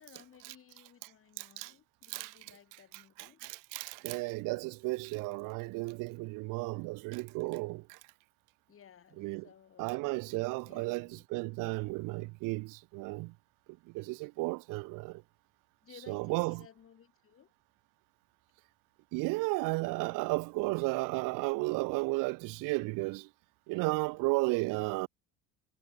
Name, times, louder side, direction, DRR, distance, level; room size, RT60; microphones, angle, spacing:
voice 1, 0.0-3.4 6.7-6.9 8.7-10.2 10.6-11.2 15.8-17.5, left 9 dB, 45° left, 4.6 m, -58 dB
voice 2, 1.4-1.7 2.1-2.3 2.9-8.0 9.2-9.5 9.8-13.3 13.9-15.2 16.1-16.6 19.1-23.3 23.7-25.1, right 25 dB, 80° right, 1.2 m, -34 dB
supercardioid pair, 100°, 32 cm